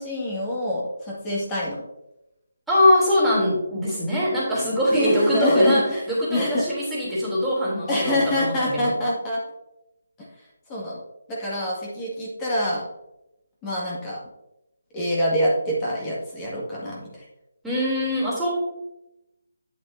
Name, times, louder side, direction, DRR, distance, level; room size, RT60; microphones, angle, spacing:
voice 1, 0.0-1.8 4.9-6.0 6.3-6.6 7.9-9.4 10.7-11.0 11.3-12.8 13.6-14.2 14.9-17.1, left 1 dB, 15° left, -5 dB, 2.0 m, -25 dB
voice 2, 2.7-8.9 17.6-18.5, left 1 dB, ahead, -10 dB, 3.1 m, -22 dB
9.0 x 7.7 x 2.7 m, 0.89 s
figure-of-eight pair, 165°, 0 cm